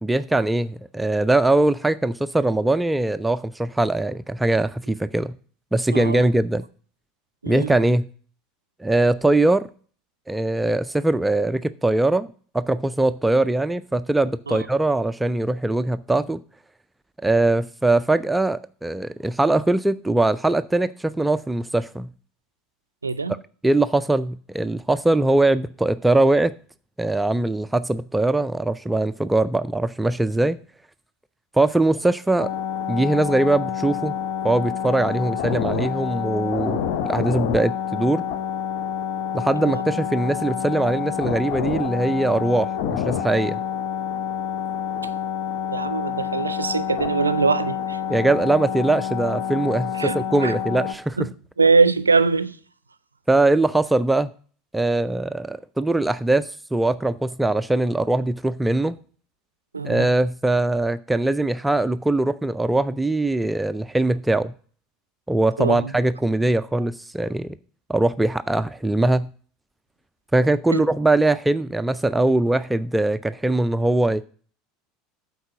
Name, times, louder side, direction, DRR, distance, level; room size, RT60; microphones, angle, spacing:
voice 1, 0.0-5.3 5.7-6.6 7.5-8.1 8.8-9.7 10.3-12.3 12.5-16.4 17.2-22.1 23.6-26.5 27.0-30.6 31.5-32.5 32.9-34.1 34.4-38.3 39.3-43.6 48.1-51.2 53.3-54.3 54.7-59.0 59.8-64.5 65.3-67.5 67.9-69.3 70.3-74.2, right 2 dB, 10° right, 0.4 m, -21 dB
voice 2, 5.9-6.3 7.4-7.7 14.5-14.7 23.0-23.3 39.6-39.8 45.7-48.0 50.0-50.6 51.2-51.3 51.6-52.6 59.7-60.1 65.6-65.9 70.7-70.8, right 4 dB, 85° right, 0.4 m, -22 dB
sound 1, 32.4-50.9, left 9 dB, 60° left, 0.7 m, -28 dB
7.9 x 4.7 x 6.2 m
figure-of-eight pair, 75°, 0 cm